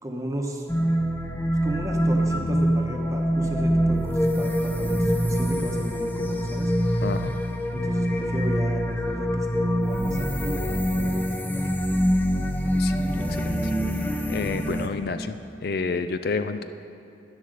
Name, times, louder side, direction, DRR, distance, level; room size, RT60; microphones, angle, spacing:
voice 1, 0.0-0.6 1.6-7.2 7.7-10.6 11.0-11.7, right 1 dB, 15° right, 1 dB, 1.1 m, -34 dB
sound 1, 0.7-14.9, equal, 10° left, 0.6 m, -24 dB
voice 2, 7.0-7.3 12.7-13.0 13.4-13.6 14.3-15.4 15.6-16.6, left 4 dB, 55° left, 10 dB, 0.4 m, -29 dB
11.5 x 10.0 x 6.6 m, 2.7 s
head